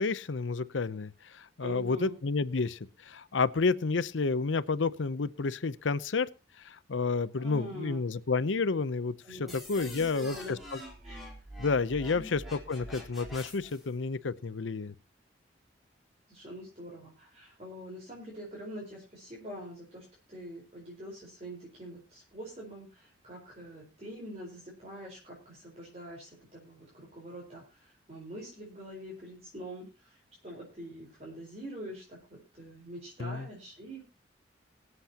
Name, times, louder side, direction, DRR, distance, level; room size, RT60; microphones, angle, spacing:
voice 1, 0.0-6.3 6.6-9.1 9.4-10.8 11.6-14.9 33.2-33.5, left 4 dB, 85° left, 0.7 m, -30 dB
voice 2, 1.6-2.1 7.4-8.0 9.2-10.6 11.0-11.2 12.1-12.4 16.3-34.1, equal, 35° right, 4.4 m, -45 dB
sound 1, 9.5-13.9, equal, ahead, 3.7 m, -46 dB
23.0 x 8.0 x 2.9 m
head